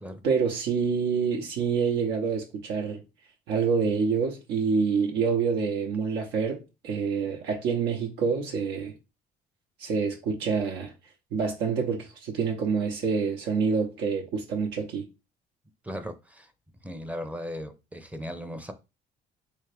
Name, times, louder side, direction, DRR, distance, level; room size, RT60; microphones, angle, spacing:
voice 1, 0.2-3.0 3.5-8.9 9.8-10.9 11.3-15.1, right 5 dB, 85° right, 0.8 m, -27 dB
voice 2, 15.8-16.5 16.8-18.7, equal, 10° right, 0.5 m, -37 dB
3.5 x 2.7 x 3.4 m
cardioid pair, 110°, 17 cm